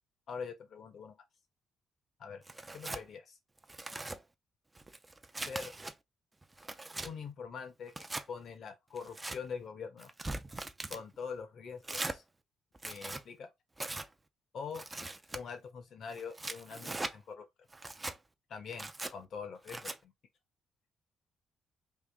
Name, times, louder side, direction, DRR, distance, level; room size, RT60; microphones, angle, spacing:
voice 1, 0.3-1.2 2.2-2.4 2.7-3.4 5.4-5.7 7.0-7.9 8.3-10.1 10.9-12.2 12.8-13.5 14.5-14.8 15.3-17.5 18.5-20.1, left 6 dB, 60° left, 1.2 m, -43 dB
Tearing, 2.5-3.0 3.6-4.2 4.8-5.9 6.4-7.1 7.9-8.3 9.0-9.4 10.0-11.0 11.8-12.2 12.7-13.2 13.8-14.1 14.7-15.4 16.1-17.1 17.7-18.2 18.7-19.1 19.7-20.0, right 2 dB, 20° right, 0.5 m, -40 dB
3.6 x 2.5 x 3.5 m
cardioid pair, 90°, 0 cm